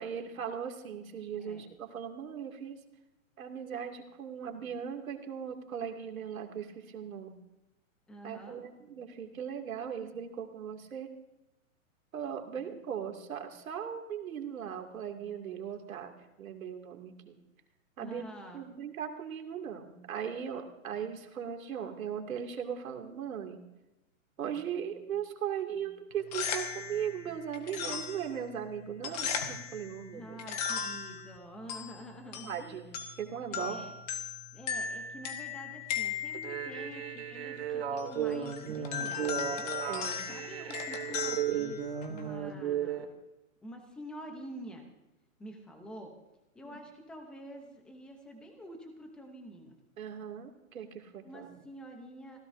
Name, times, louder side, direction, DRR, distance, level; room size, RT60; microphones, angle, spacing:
voice 1, 0.0-2.8 3.4-7.4 8.2-11.1 12.1-16.1 16.4-17.4 18.0-18.2 18.5-23.6 24.4-30.4 32.4-33.8 39.8-40.3 46.6-46.8 50.0-51.5, right 8 dB, 75° right, 4 dB, 2.5 m, -38 dB
voice 2, 8.1-8.6 18.0-18.6 30.1-32.8 33.5-33.9 34.5-39.9 40.3-43.1 43.6-44.8 45.4-46.1 46.5-49.7 51.2-52.4, equal, ahead, 3 dB, 0.6 m, -47 dB
sound 1, 26.1-42.4, left 7 dB, 30° left, 1.4 m, -38 dB
sound 2, 36.3-43.0, right 9 dB, 45° right, 1.9 m, -35 dB
26.0 x 16.5 x 2.6 m, 0.97 s
hypercardioid pair, 165°, 41 cm